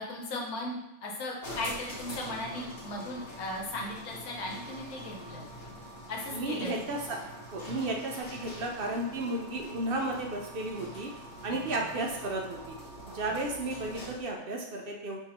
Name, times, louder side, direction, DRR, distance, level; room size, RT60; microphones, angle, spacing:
voice 1, 0.0-5.4 6.1-6.7 11.5-11.8 13.3-13.4, left 1 dB, 80° left, -1 dB, 1.3 m, -37 dB
sound 1, 1.4-14.3, equal, 60° left, 1.7 m, -44 dB
voice 2, 6.3-7.2 7.5-12.7 13.1-15.2, right 2 dB, 70° right, 0 dB, 0.5 m, -33 dB
5.8 x 2.9 x 2.9 m, 0.97 s
omnidirectional pair, 1.5 m